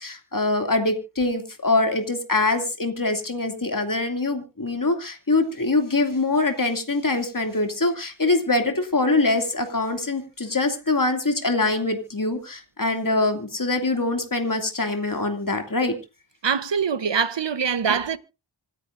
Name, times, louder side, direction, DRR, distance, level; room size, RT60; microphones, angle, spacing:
voice 1, 0.0-15.9, left 2 dB, 40° left, 2.6 m, -24 dB
voice 2, 16.4-18.2, right 6 dB, 65° right, 1.0 m, -23 dB
26.0 x 10.0 x 2.6 m
wide cardioid pair, 45°, 47 cm